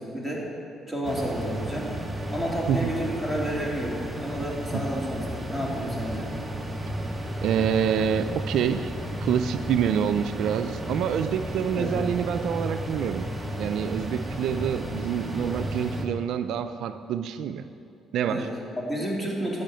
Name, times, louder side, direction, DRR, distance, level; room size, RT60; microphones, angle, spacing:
voice 1, 0.1-0.5 0.9-1.9 2.3-6.3 11.8-12.0 18.3-19.6, equal, 10° left, -3 dB, 3.1 m, -30 dB
sound 1, 1.0-16.1, right 1 dB, 15° right, 1.2 m, -33 dB
voice 2, 7.4-8.9 9.2-13.3 13.6-17.6 18.1-18.5, right 8 dB, 75° right, 10 dB, 0.4 m, -27 dB
12.5 x 5.7 x 9.0 m, 2.6 s
cardioid pair, 85°, 0 cm